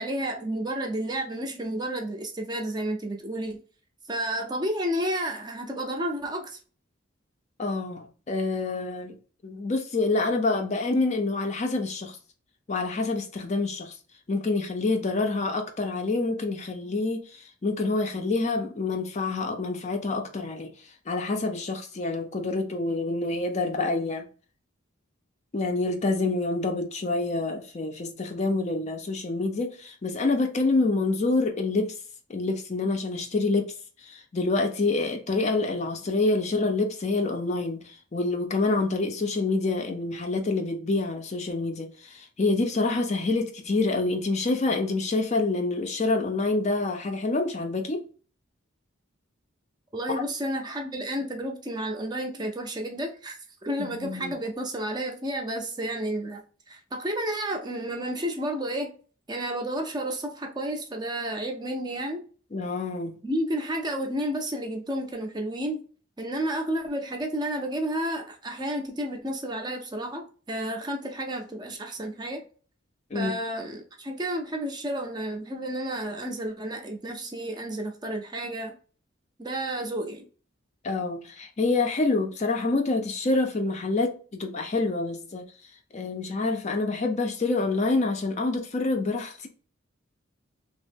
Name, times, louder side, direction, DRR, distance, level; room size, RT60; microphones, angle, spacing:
voice 1, 0.0-3.6 4.1-6.6 49.9-53.4 53.6-56.4 56.7-59.0 59.3-62.2 63.2-65.8 66.2-72.4 73.1-78.7 79.4-80.3, right 1 dB, 20° right, 0.5 m, -31 dB
voice 2, 7.6-9.2 9.4-12.2 12.7-14.0 14.3-20.7 21.1-24.3 25.5-32.0 32.3-33.7 34.0-48.0 53.8-54.4 62.5-63.2 73.1-73.3 80.8-85.5 85.9-89.5, left 3 dB, 35° left, 0.4 m, -27 dB
3.1 x 2.0 x 3.3 m
head